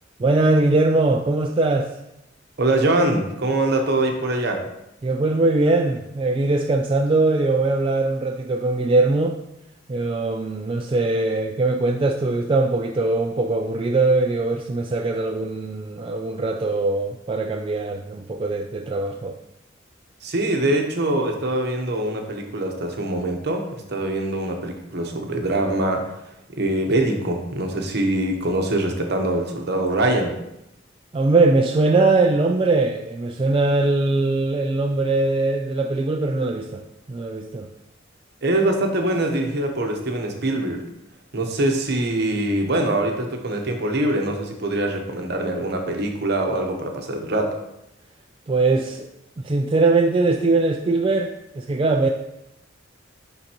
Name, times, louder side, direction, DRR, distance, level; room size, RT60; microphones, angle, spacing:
voice 1, 0.2-1.9 5.0-9.4 9.9-19.4 31.1-36.8 37.1-37.7 48.5-49.1 49.4-52.1, right 3 dB, 25° right, 2 dB, 0.3 m, -21 dB
voice 2, 2.6-4.6 20.2-26.0 26.5-30.4 38.4-40.8 41.3-47.5, right 1 dB, 55° right, 3 dB, 0.9 m, -23 dB
9.7 x 3.9 x 2.9 m, 0.86 s
head